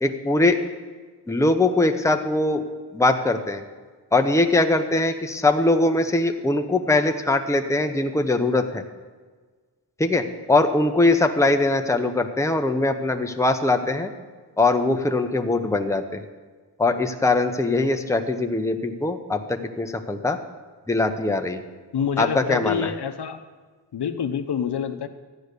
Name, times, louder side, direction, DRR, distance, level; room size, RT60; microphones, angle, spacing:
voice 1, 0.0-0.6 1.3-2.6 2.9-3.6 4.1-8.8 10.0-14.1 14.6-16.2 16.8-20.4 20.9-21.6 22.2-22.9, left 2 dB, 5° left, 5 dB, 0.8 m, -21 dB
voice 2, 21.9-23.4 23.9-25.1, left 7 dB, 70° left, 9 dB, 0.9 m, -27 dB
13.0 x 9.6 x 6.7 m, 1.4 s
wide cardioid pair, 110°, 41 cm